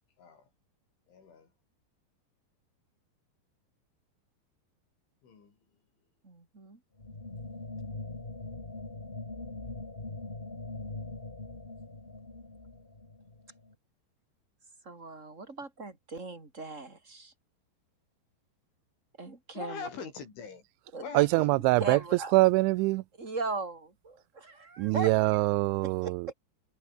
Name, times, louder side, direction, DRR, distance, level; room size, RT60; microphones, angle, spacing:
voice 1, 1.1-1.5 5.2-5.6 19.6-20.6 21.0-21.5, left 6 dB, 80° left, 8.5 m, -42 dB
voice 2, 6.2-6.8 14.8-17.3 19.2-19.9 20.9-21.1 21.8-22.4 23.2-25.1 25.8-26.3, right 3 dB, 15° right, 3.8 m, -38 dB
sound 1, 7.0-13.7, left 2 dB, 15° left, 1.9 m, -42 dB
voice 3, 21.1-22.0 22.3-23.0 24.8-26.3, right 22 dB, 85° right, 3.0 m, -24 dB
omnidirectional pair, 5.4 m